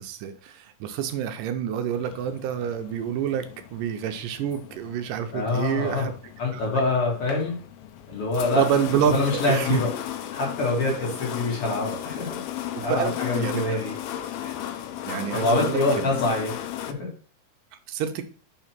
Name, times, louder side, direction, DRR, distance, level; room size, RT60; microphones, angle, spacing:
voice 1, 0.0-6.1 6.5-6.6 8.6-9.8 12.8-13.6 15.1-16.1 17.9-18.2, right 9 dB, 75° right, 7 dB, 2.0 m, -28 dB
sound 1, 2.0-16.9, left 11 dB, 90° left, 2.5 m, -35 dB
voice 2, 5.3-6.1 6.4-7.6 8.1-8.6 9.0-9.9 10.3-12.3 12.8-13.9 14.4-14.5 15.3-17.1, left 2 dB, 45° left, -3 dB, 2.4 m, -25 dB
5.7 x 3.8 x 5.9 m, 0.41 s
omnidirectional pair, 4.3 m